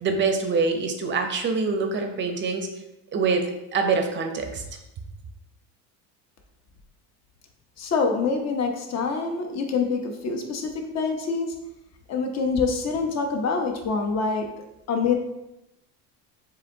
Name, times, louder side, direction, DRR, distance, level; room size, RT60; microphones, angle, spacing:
voice 1, 0.0-2.7 3.1-3.4 3.7-4.6, right 4 dB, 30° right, 5 dB, 0.6 m, -24 dB
voice 2, 7.8-11.6 12.1-14.5 14.9-15.1, left 4 dB, 40° left, 4 dB, 0.8 m, -25 dB
7.1 x 2.7 x 2.7 m, 0.91 s
cardioid pair, 130°, 41 cm